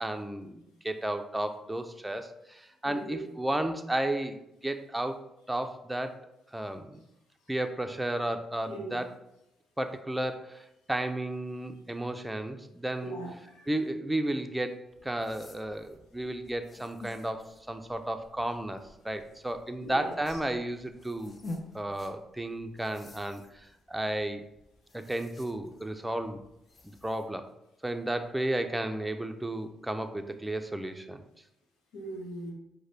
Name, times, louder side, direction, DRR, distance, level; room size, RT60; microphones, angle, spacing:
voice 1, 0.0-6.1 6.5-7.0 7.5-9.1 9.8-13.1 13.7-21.4 21.7-24.4 24.9-26.4 27.0-27.5 27.8-31.2, right 1 dB, 10° right, 7 dB, 0.5 m, -33 dB
voice 2, 2.9-3.2 8.7-9.0 13.0-13.7 19.8-20.1 31.9-32.5, right 1 dB, 85° left, -2 dB, 0.9 m, -39 dB
sound 1, 14.9-27.3, left 2 dB, 40° left, 0.7 m, -50 dB
4.7 x 2.2 x 4.2 m, 0.84 s
supercardioid pair, 55°, 0 cm